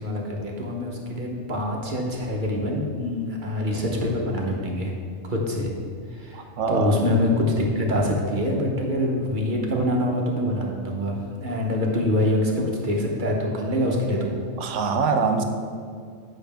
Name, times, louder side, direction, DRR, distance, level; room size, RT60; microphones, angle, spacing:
voice 1, 0.0-4.9 5.3-5.7 6.1-6.4 6.7-14.4, left 1 dB, 40° right, -1 dB, 1.1 m, -25 dB
voice 2, 6.3-7.0 14.6-15.4, right 5 dB, 65° right, 6 dB, 1.0 m, -24 dB
9.0 x 6.4 x 3.5 m, 2.2 s
omnidirectional pair, 1.4 m